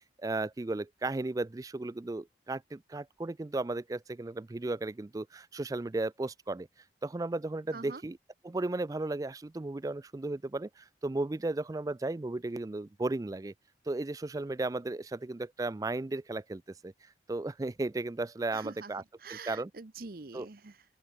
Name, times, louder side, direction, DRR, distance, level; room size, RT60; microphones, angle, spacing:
voice 1, 0.0-6.7 7.0-8.2 8.4-13.5 13.9-19.0 19.3-19.7 20.3-20.5, right 2 dB, 20° right, 0.3 m, -35 dB
voice 2, 18.5-18.9 19.2-20.8, right 4 dB, 50° right, 0.8 m, -45 dB
open air
head